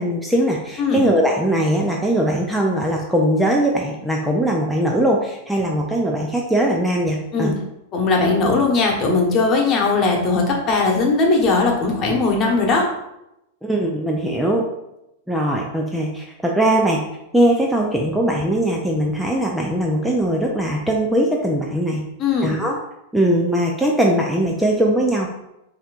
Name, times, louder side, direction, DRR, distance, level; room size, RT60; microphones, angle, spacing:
voice 1, 0.0-7.5 13.6-14.6 15.3-17.0 17.3-22.0 22.4-22.8 23.1-25.3, right 1 dB, 5° right, -1 dB, 0.5 m, -20 dB
voice 2, 7.9-12.9 22.2-22.5, left 3 dB, 35° left, 0 dB, 1.1 m, -19 dB
5.7 x 2.8 x 2.4 m, 0.86 s
hypercardioid pair, 105°, 0 cm